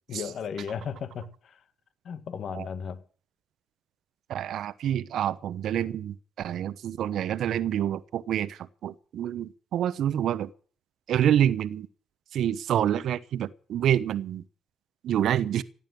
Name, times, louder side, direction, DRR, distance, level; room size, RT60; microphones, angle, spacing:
voice 1, 0.1-1.5 2.1-3.0, left 7 dB, 60° left, 1.7 m, -35 dB
voice 2, 4.3-10.5 11.1-11.9 12.3-14.4 15.0-15.6, right 10 dB, 65° right, 0.9 m, -27 dB
16.5 x 8.8 x 7.7 m
hypercardioid pair, 60°, 0 cm